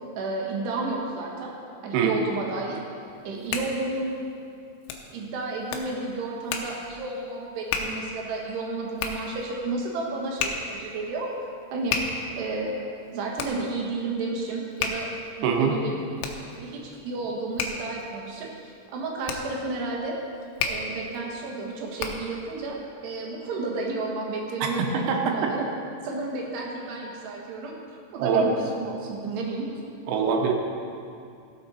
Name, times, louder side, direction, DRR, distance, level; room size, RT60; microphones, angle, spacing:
voice 1, 0.2-1.5 1.8-2.8 3.2-4.1 5.1-11.3 11.7-12.0 12.4-12.7 13.1-15.1 15.4-16.0 16.5-20.2 20.7-25.7 26.0-27.7 28.1-29.9, right 3 dB, 70° right, -1 dB, 3.4 m, -32 dB
Hands, 3.1-22.4, left 5 dB, 80° left, 3.1 m, -35 dB
voice 2, 15.4-15.8 24.6-24.7 25.1-25.5 28.1-28.4 30.1-30.5, right 6 dB, 90° right, 1 dB, 3.6 m, -23 dB
17.0 x 8.0 x 4.3 m, 2.4 s
omnidirectional pair, 5.3 m